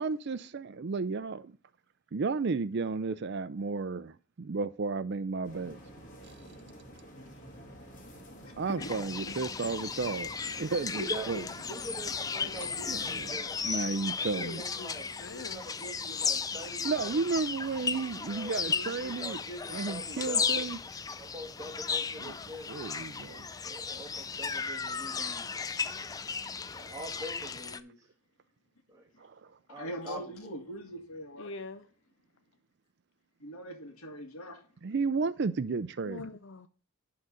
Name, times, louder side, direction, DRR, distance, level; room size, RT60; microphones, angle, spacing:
voice 1, 0.0-1.5 2.1-5.8 8.6-10.3 10.6-11.4 12.9-14.6 16.8-19.4 19.7-20.8 22.2-22.3 22.7-23.5 29.2-29.3 34.8-36.2, right 4 dB, 50° right, 0.4 m, -33 dB
sound 1, 5.4-13.3, equal, 35° left, 2.1 m, -49 dB
voice 2, 7.1-7.4 14.3-15.9 25.5-25.8 31.4-31.9 36.1-36.7, left 3 dB, 55° left, 0.6 m, -45 dB
voice 3, 8.4-8.9 9.2-9.3 29.7-31.5 33.4-34.6, equal, 80° left, 2.0 m, -42 dB
sound 2, 8.8-27.8, left 5 dB, 15° left, 0.3 m, -35 dB
voice 4, 11.0-13.6 14.2-17.2 18.2-20.7 21.2-22.8 23.6-25.5 26.7-28.0 28.9-29.1 29.7-30.5, right 1 dB, 15° right, 2.2 m, -44 dB
11.0 x 3.9 x 5.6 m
head